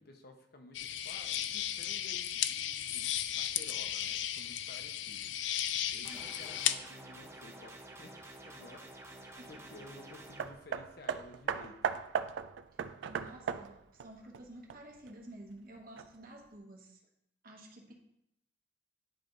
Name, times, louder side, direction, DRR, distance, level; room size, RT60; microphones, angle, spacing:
voice 1, 0.0-5.4 5.9-11.9, left 2 dB, 60° left, 4 dB, 0.8 m, -54 dB
sound 1, 0.7-6.7, left 11 dB, 85° left, 0.4 m, -35 dB
sound 2, 6.0-10.4, right 1 dB, 15° right, 0.6 m, -50 dB
Hammer, 10.4-15.1 16.0-16.1, right 7 dB, 85° right, 0.3 m, -37 dB
voice 2, 13.1-17.0 17.4-17.9, right 1 dB, 50° right, 0 dB, 1.2 m, -51 dB
10.0 x 3.4 x 3.8 m, 0.79 s
head